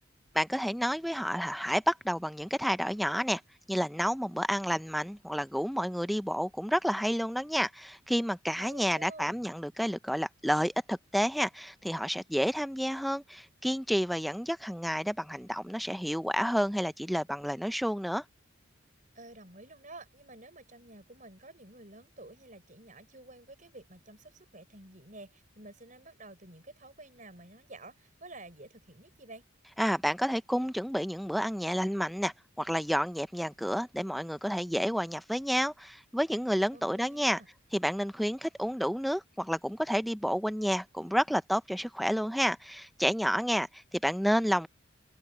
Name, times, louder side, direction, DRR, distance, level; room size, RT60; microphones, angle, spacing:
voice 1, 0.3-3.4 3.7-18.2 29.8-37.4 37.7-44.7, equal, ahead, 0.5 m, -30 dB
voice 2, 8.6-9.5 19.1-29.4 36.7-37.5, right 2 dB, 40° right, 6.4 m, -50 dB
head